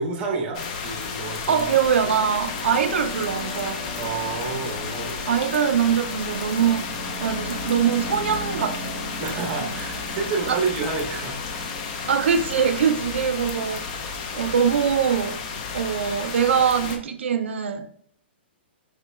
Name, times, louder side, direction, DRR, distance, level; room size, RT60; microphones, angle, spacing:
voice 1, 0.0-1.7 4.0-5.2 9.2-11.4, right 4 dB, 20° right, 0.8 m, -29 dB
sound 1, 0.5-17.0, left 5 dB, 35° left, 0.4 m, -32 dB
sound 2, 1.3-16.7, equal, 55° left, 1.3 m, -39 dB
voice 2, 1.5-3.9 5.3-6.8 7.2-8.9 10.5-10.6 12.1-13.9 14.3-15.4 15.7-17.9, right 7 dB, 80° right, 0.4 m, -23 dB
4.8 x 2.1 x 3.0 m
hypercardioid pair, 160°, 6 cm